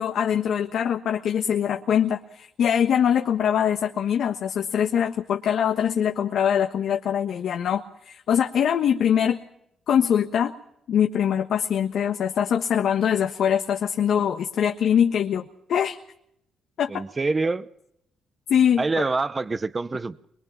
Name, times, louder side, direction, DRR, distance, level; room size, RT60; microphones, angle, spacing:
voice 1, 0.0-9.4 9.9-10.5 10.9-15.4 15.7-16.0 16.8-17.0 18.5-18.8, left 8 dB, 70° left, 5 dB, 1.4 m, -23 dB
voice 2, 16.9-17.7 18.8-20.2, right 3 dB, 25° right, 14 dB, 0.9 m, -26 dB
23.5 x 22.0 x 5.8 m, 0.75 s
cardioid pair, 90°, 0 cm